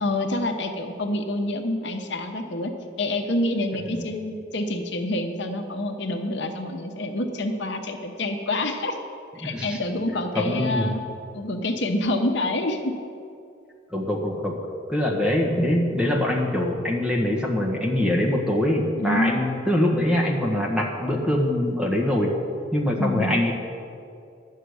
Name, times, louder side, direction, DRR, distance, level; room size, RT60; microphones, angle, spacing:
voice 1, 0.0-2.7 3.0-9.0 9.4-11.0 11.3-12.9 19.0-19.4 23.0-23.4, left 1 dB, 65° left, 4 dB, 1.0 m, -27 dB
voice 2, 9.4-9.8 10.3-10.9 13.9-14.6 14.9-22.3 22.7-23.5, left 1 dB, 5° right, -1 dB, 1.4 m, -23 dB
11.5 x 6.6 x 9.5 m, 2.5 s
head